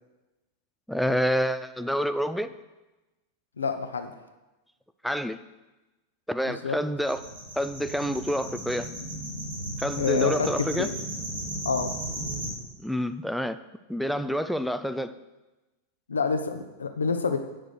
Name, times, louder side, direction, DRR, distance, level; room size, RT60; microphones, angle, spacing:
voice 1, 0.9-2.5 5.0-5.4 6.3-7.2 7.6-8.9 9.8-10.9 12.8-13.6 13.9-15.1, equal, ahead, 11 dB, 0.5 m, -28 dB
voice 2, 3.6-4.1 6.6-6.8 10.0-10.5 10.7-10.9 11.6-11.9 16.1-17.4, left 5 dB, 70° left, 7 dB, 0.9 m, -27 dB
sound 1, 7.0-12.5, right 1 dB, 70° right, 3.4 m, -35 dB
9.4 x 6.2 x 6.7 m, 1.1 s
figure-of-eight pair, 90°, 0 cm